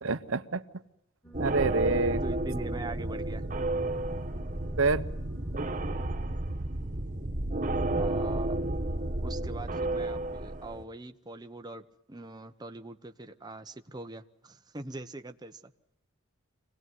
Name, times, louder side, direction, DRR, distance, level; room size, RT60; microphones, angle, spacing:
voice 1, 0.0-0.6 1.4-2.2 4.8-5.0, right 3 dB, 70° right, 11 dB, 1.0 m, -27 dB
sound 1, 1.2-6.2, right 2 dB, 10° left, 3.3 m, -52 dB
sound 2, 1.3-10.8, right 2 dB, 40° right, 1.5 m, -31 dB
voice 2, 2.2-3.4 7.9-8.6 9.2-15.7, right 2 dB, 20° right, 6 dB, 1.0 m, -42 dB
26.0 x 18.5 x 9.6 m, 0.79 s
head